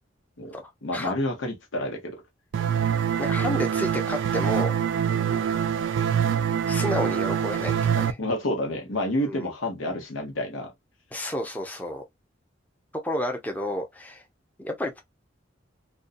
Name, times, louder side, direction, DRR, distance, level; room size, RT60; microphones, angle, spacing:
voice 1, 0.4-2.2 8.2-10.7, left 1 dB, 90° left, 0.9 m, -29 dB
sound 1, 2.5-8.1, right 8 dB, 70° right, 0.3 m, -25 dB
voice 2, 3.2-4.7 6.7-8.2 9.2-9.5 11.1-12.0 13.0-14.2 14.6-15.0, left 1 dB, 10° left, 0.5 m, -31 dB
2.6 x 2.2 x 2.5 m
head